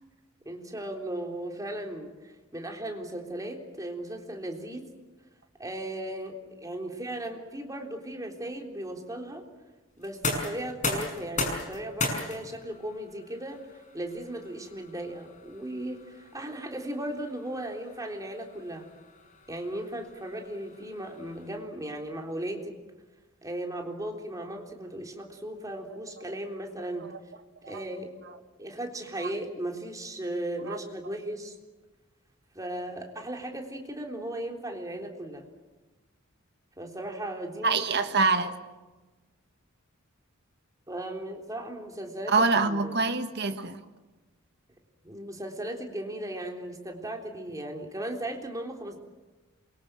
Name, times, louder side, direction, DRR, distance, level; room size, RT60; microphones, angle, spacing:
voice 1, 0.5-4.9 5.6-9.4 10.0-13.6 13.9-18.9 19.5-22.8 23.4-27.1 27.7-28.1 28.6-31.5 32.5-35.4 36.8-37.8 40.9-43.0 45.0-49.0, right 1 dB, 15° right, 3.6 m, -36 dB
sound 1, 10.0-21.8, left 2 dB, 35° left, 6.3 m, -37 dB
voice 2, 37.6-38.5 42.3-43.8, right 4 dB, 55° right, 1.8 m, -25 dB
27.5 x 23.5 x 7.6 m
head